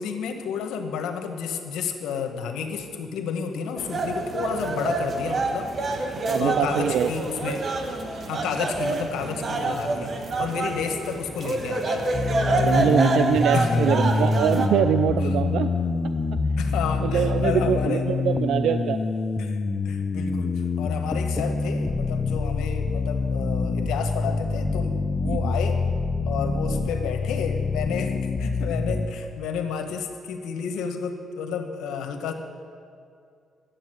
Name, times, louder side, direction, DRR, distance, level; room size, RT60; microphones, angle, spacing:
voice 1, 0.0-5.7 6.3-7.6 8.3-12.3 12.6-12.9 13.5-13.8 16.6-18.0 19.4-19.6 19.8-25.8 26.2-32.3, left 6 dB, 85° left, 5 dB, 1.2 m, -31 dB
sound 1, 3.8-14.7, right 2 dB, 45° right, 1.4 m, -27 dB
voice 2, 6.3-7.1 9.9-10.1 12.5-15.7 17.0-19.0 25.2-25.6, right 9 dB, 75° right, 9 dB, 0.4 m, -24 dB
sound 2, 12.1-29.1, left 4 dB, 30° left, 0.7 m, -26 dB
12.0 x 8.1 x 7.8 m, 2.3 s
cardioid pair, 90°, 0 cm